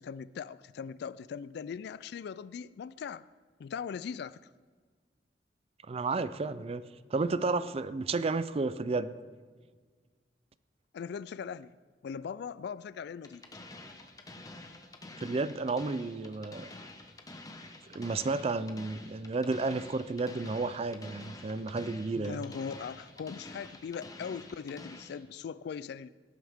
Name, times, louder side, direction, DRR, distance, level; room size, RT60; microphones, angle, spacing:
voice 1, 0.0-3.3 3.6-4.4 10.9-11.7 12.0-13.5 22.2-26.1, left 6 dB, 65° left, 0.3 m, -40 dB
voice 2, 5.9-6.8 7.1-9.1 15.2-16.7 17.9-22.4, right 3 dB, 35° right, 0.4 m, -32 dB
sound 1, 13.2-25.2, left 2 dB, 20° left, 1.0 m, -48 dB
17.5 x 9.2 x 3.6 m
head